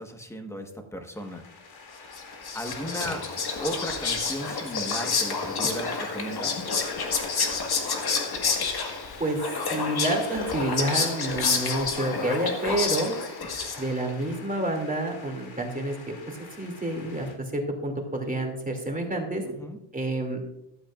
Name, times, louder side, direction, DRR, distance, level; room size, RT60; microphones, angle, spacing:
voice 1, 0.0-1.4 2.5-3.2 3.6-6.5 19.5-19.8, equal, 5° left, 5 dB, 1.4 m, -35 dB
sound 1, 1.1-17.4, left 4 dB, 65° left, 2.8 m, -47 dB
Whispering, 2.1-14.1, left 4 dB, 50° left, 1.8 m, -29 dB
voice 2, 9.2-13.1 13.8-19.4 19.9-20.4, right 1 dB, 15° right, 2 dB, 2.6 m, -29 dB
14.5 x 12.5 x 2.5 m, 0.81 s
cardioid pair, 125°, 50 cm